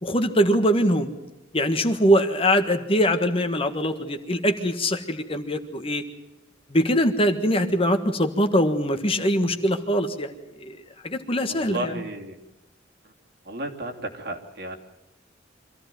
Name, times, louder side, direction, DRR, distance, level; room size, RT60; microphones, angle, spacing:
voice 1, 0.0-1.1 1.5-6.0 6.7-10.3 10.6-10.8 11.0-11.9, equal, 30° left, 6 dB, 1.6 m, -22 dB
voice 2, 11.5-12.4 13.0-13.1 13.4-14.8, right 1 dB, 60° right, 2 dB, 3.0 m, -33 dB
25.5 x 15.5 x 9.3 m, 0.99 s
head